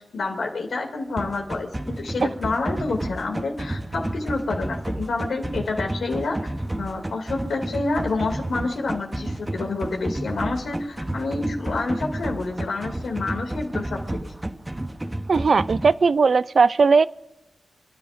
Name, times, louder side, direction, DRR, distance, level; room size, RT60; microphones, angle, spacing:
voice 1, 0.1-6.4 6.8-14.0, left 3 dB, 80° left, 2 dB, 2.4 m, -28 dB
sound 1, 1.2-15.9, right 1 dB, 20° right, 0.8 m, -31 dB
voice 2, 15.3-17.1, right 4 dB, 60° right, 17 dB, 0.4 m, -18 dB
30.0 x 10.5 x 2.5 m, 0.96 s
cardioid pair, 55°, 0 cm